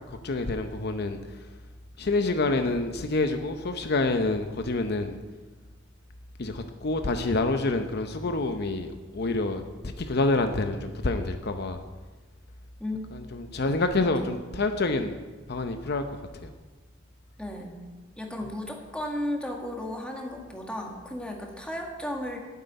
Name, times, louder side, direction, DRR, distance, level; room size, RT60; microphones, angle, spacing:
voice 1, 0.1-1.4 2.0-5.2 6.4-9.6 10.0-11.8 13.1-15.2 15.5-16.1 16.4-16.5, left 2 dB, 55° left, 7 dB, 0.7 m, -27 dB
voice 2, 17.4-17.8 18.2-22.4, left 1 dB, 5° left, 1 dB, 1.7 m, -34 dB
9.4 x 7.8 x 9.3 m, 1.3 s
head